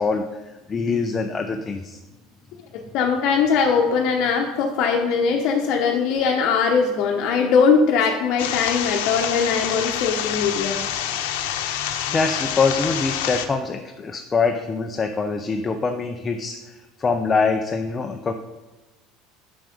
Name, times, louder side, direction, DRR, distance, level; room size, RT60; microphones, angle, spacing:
voice 1, 0.0-2.0 11.7-18.3, left 4 dB, 20° left, 5 dB, 0.5 m, -24 dB
voice 2, 2.9-10.8, left 5 dB, 60° left, 1 dB, 0.9 m, -20 dB
sound 1, 8.4-13.5, left 10 dB, 85° left, 0.8 m, -27 dB
7.4 x 6.0 x 5.2 m, 1.1 s
supercardioid pair, 125°, 0 cm